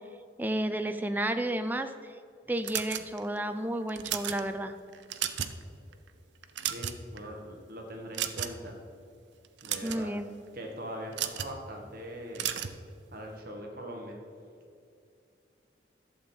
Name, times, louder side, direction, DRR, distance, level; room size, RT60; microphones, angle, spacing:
voice 1, 0.4-1.9 2.5-4.7 9.8-10.2, right 1 dB, 10° right, 8 dB, 0.4 m, -31 dB
sound 1, 2.6-3.4 3.9-4.4 4.9-5.6 5.9-6.1 6.4-7.2 8.1-8.7 9.4-10.0 11.1-11.5 12.3-12.8, right 10 dB, 75° right, 0.6 m, -33 dB
voice 2, 6.7-8.8 9.6-10.1 10.5-12.5 13.1-14.2, equal, 50° right, 2 dB, 1.4 m, -41 dB
11.5 x 7.3 x 4.4 m, 2.4 s
head